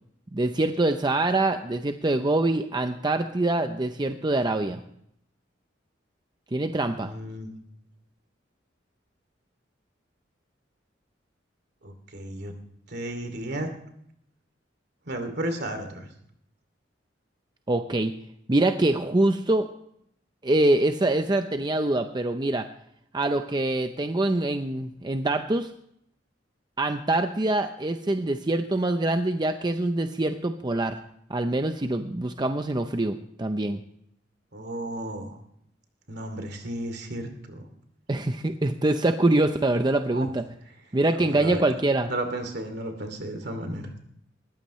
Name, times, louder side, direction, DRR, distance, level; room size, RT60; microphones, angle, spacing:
voice 1, 0.3-4.8 6.5-7.1 17.7-18.1 18.5-19.7 20.4-22.7 23.1-25.7 26.8-31.0 31.3-33.8 38.1-40.4 40.9-42.1, right 2 dB, 25° right, 7 dB, 0.6 m, -24 dB
voice 2, 7.0-7.5 11.8-12.5 12.9-13.7 15.1-16.1 34.5-35.4 36.1-37.6 40.1-40.3 41.1-41.6 42.1-43.9, right 1 dB, 60° right, 6 dB, 2.6 m, -33 dB
20.0 x 14.5 x 3.1 m, 0.71 s
head